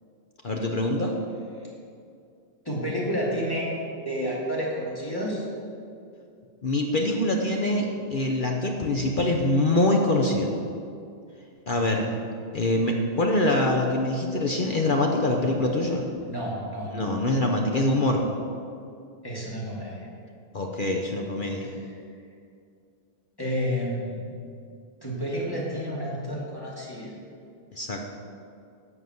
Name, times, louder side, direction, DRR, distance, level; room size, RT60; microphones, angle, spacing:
voice 1, 0.4-1.2 6.6-10.6 11.7-12.0 12.5-16.1 16.9-18.2 20.5-21.7 27.7-28.0, left 1 dB, 60° left, 1 dB, 0.5 m, -24 dB
voice 2, 2.6-3.7 4.0-5.4 11.7-12.2 16.2-17.0 19.2-20.1 21.6-21.9 23.4-24.3 25.0-27.2, equal, 10° left, -5 dB, 2.2 m, -30 dB
11.0 x 5.9 x 7.9 m, 2.4 s
omnidirectional pair, 2.1 m